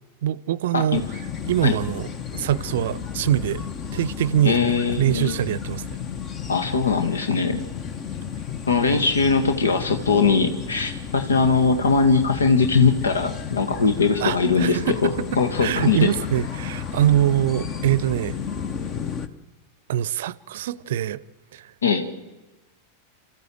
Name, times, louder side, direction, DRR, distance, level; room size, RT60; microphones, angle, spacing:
voice 1, 0.2-1.0 1.5-4.6 5.0-5.9 14.2-18.3 19.9-21.2 21.5-21.7, right 12 dB, 55° right, 0.6 m, -24 dB
voice 2, 0.7-1.0 1.6-1.8 4.5-5.3 6.5-7.6 8.7-16.1 21.8-22.1, left 4 dB, 70° left, 1.6 m, -21 dB
sound 1, 0.9-19.3, left 7 dB, 30° left, 1.2 m, -33 dB
29.5 x 14.5 x 7.7 m
figure-of-eight pair, 90°, 0 cm